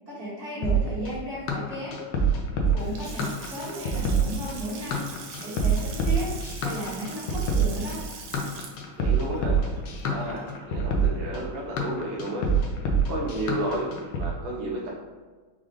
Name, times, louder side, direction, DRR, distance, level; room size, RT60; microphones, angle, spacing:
voice 1, 0.1-2.0 2.6-5.1 5.4-6.3 6.6-8.0, equal, 40° right, -10 dB, 1.9 m, -34 dB
sound 1, 0.6-14.3, right 3 dB, 70° left, 1.3 m, -26 dB
Water tap faucet / Sink (filling or washing) / Splash splatter, 2.7-10.8, right 5 dB, 70° right, 1.2 m, -43 dB
voice 2, 9.0-9.6 10.1-12.4 13.1-13.9 14.2-14.9, right 1 dB, 85° right, -4 dB, 1.6 m, -32 dB
4.7 x 2.5 x 3.7 m, 1.4 s
omnidirectional pair, 2.1 m